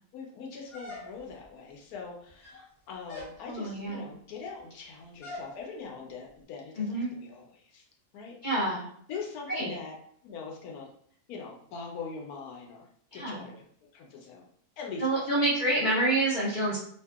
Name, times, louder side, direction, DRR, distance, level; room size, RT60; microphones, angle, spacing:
voice 1, 0.1-7.8 8.1-8.3 9.1-10.0 10.2-10.9 11.3-13.6 13.9-14.5 14.8-15.5, left 5 dB, 75° left, 0 dB, 1.1 m, -42 dB
sound 1, 0.7-1.5 2.3-2.7 3.1-3.4 5.2-5.5, left 2 dB, 40° left, 0.9 m, -42 dB
voice 2, 3.5-4.0 6.8-7.1 8.4-8.8 9.5-9.7 13.1-13.4 15.0-16.8, right 1 dB, 55° left, -7 dB, 0.5 m, -27 dB
2.7 x 2.5 x 2.3 m, 0.63 s
omnidirectional pair, 1.6 m